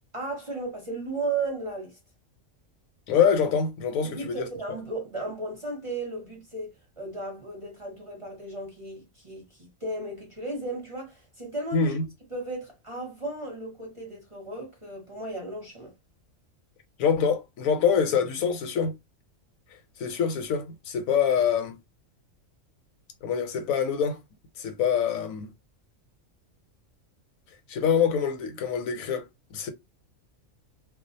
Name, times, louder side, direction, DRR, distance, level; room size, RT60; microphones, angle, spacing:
voice 1, 0.1-2.0 4.0-11.9 12.3-15.9, right 2 dB, 30° right, 0.8 m, -35 dB
voice 2, 3.1-4.5 11.7-12.0 17.0-19.0 20.0-21.8 23.2-24.2 24.6-25.5 27.7-29.2 29.5-29.7, left 7 dB, 85° left, 1.1 m, -25 dB
2.4 x 2.3 x 2.6 m
omnidirectional pair, 1.4 m